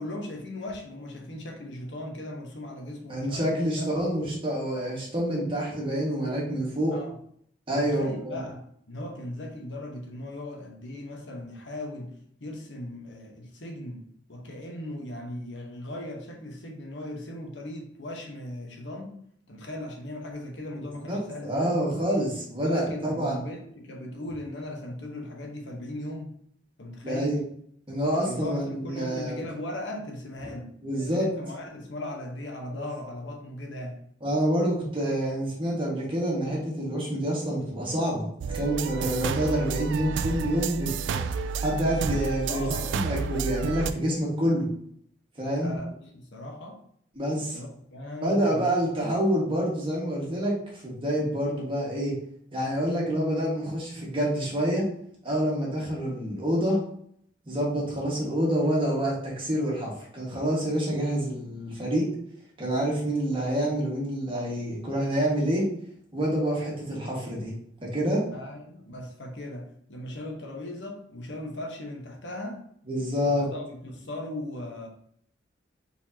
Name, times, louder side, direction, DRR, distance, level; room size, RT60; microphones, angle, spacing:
voice 1, 0.0-3.8 6.9-7.1 7.8-12.1 12.4-14.0 14.3-19.1 19.5-21.8 22.6-26.3 26.8-27.4 28.2-34.0 41.8-43.0 45.6-46.8 47.4-48.7 68.3-72.6 73.2-74.9, left 1 dB, 75° left, 1 dB, 1.1 m, -38 dB
voice 2, 3.1-6.9 7.7-8.4 20.8-23.3 27.0-27.4 27.9-29.4 30.8-31.3 32.7-32.8 34.2-38.3 38.5-41.2 41.6-44.7 45.4-45.7 47.1-47.6 48.2-50.5 50.8-52.1 52.5-54.8 55.2-56.8 57.5-62.1 62.6-65.6 66.1-67.5 67.8-68.2 72.9-73.5, equal, 30° right, -4 dB, 1.7 m, -27 dB
sound 1, 38.4-43.9, right 6 dB, 70° right, 0.3 m, -30 dB
4.4 x 4.2 x 2.8 m, 0.66 s
head